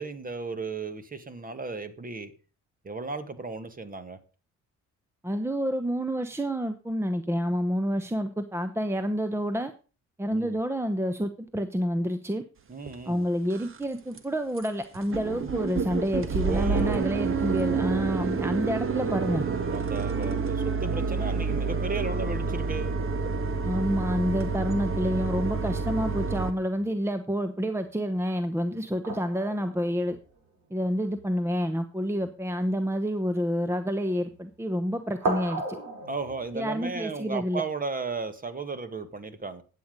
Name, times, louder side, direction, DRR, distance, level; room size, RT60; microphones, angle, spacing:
voice 1, 0.0-2.3 2.8-4.2 10.3-10.6 12.7-13.3 16.5-17.1 19.7-23.0 36.1-39.6, right 4 dB, 30° right, 11 dB, 1.7 m, -35 dB
voice 2, 5.2-9.7 10.2-12.4 13.1-19.4 23.6-30.2 30.7-35.8 36.5-37.6, equal, 10° right, 9 dB, 0.9 m, -28 dB
sound 1, 12.9-13.0 13.5-13.8 14.2-14.3 14.6-14.7 14.9-26.5, right 5 dB, 45° right, 1.4 m, -29 dB
sound 2, 26.2-27.0 29.0-31.3 32.2-32.3 32.6-33.3 34.2-34.6 35.0-36.8, right 2 dB, 75° right, 4.7 m, -36 dB
11.5 x 8.2 x 5.3 m, 0.36 s
cardioid pair, 90°, 30 cm